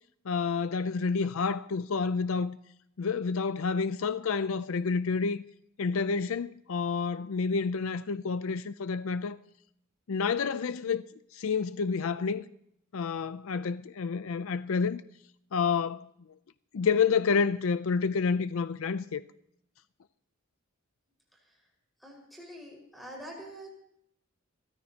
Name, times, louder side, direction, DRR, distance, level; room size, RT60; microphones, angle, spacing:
voice 1, 0.3-2.6 3.0-5.4 5.8-9.4 10.1-11.0 11.3-12.5 12.9-15.0 15.5-16.1 16.7-19.2, left 5 dB, 65° left, 0.5 m, -29 dB
voice 2, 22.0-23.7, right 1 dB, ahead, 5.1 m, -45 dB
29.5 x 14.0 x 2.9 m
head